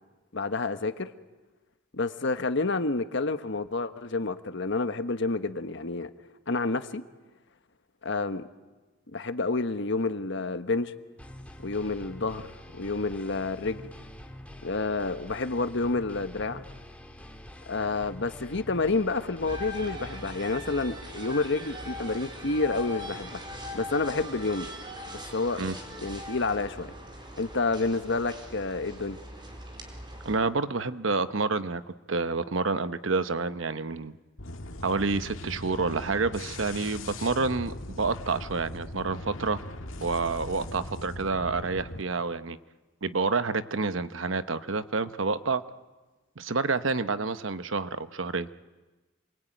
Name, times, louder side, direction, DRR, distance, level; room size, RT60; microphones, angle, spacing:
voice 1, 0.3-1.1 1.9-6.1 6.5-7.0 8.0-8.5 9.1-10.9 11.6-13.9 14.6-16.6 17.7-23.4 23.7-24.7 25.1-25.6 26.0-26.9 27.4-29.2, left 3 dB, 65° left, 1.3 m, -29 dB
sound 1, 11.2-19.9, left 1 dB, 5° left, 2.1 m, -46 dB
sound 2, 19.5-30.4, equal, 25° right, 4.3 m, -41 dB
voice 2, 30.2-31.8 32.1-34.2 34.8-39.6 40.0-42.6 43.0-45.6 46.4-48.5, right 4 dB, 75° right, 1.0 m, -28 dB
sound 3, 34.4-42.0, left 1 dB, 85° left, 2.0 m, -40 dB
27.5 x 23.5 x 9.2 m
head